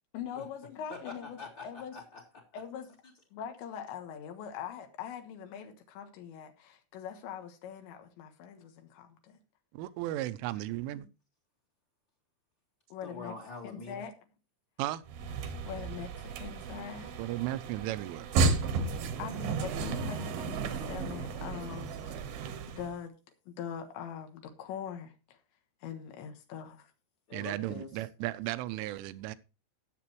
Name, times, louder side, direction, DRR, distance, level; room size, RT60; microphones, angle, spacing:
voice 1, 0.1-2.0 2.5-2.9 3.3-9.4 12.9-13.3 13.6-14.1 15.6-17.1 19.2-22.1 22.7-23.1 23.5-25.4 25.8-26.9, left 8 dB, 75° left, 3.5 m, -42 dB
voice 2, 0.9-2.6 10.5-10.6 11.0-11.1 13.0-14.0 27.3-28.0, left 4 dB, 40° left, 1.8 m, -45 dB
voice 3, 9.7-11.1 14.8-15.0 17.2-18.3 27.3-29.4, right 15 dB, 90° right, 3.2 m, -35 dB
sound 1, 15.1-22.9, right 4 dB, 70° right, 2.3 m, -33 dB
18.5 x 7.7 x 3.0 m
omnidirectional pair, 5.5 m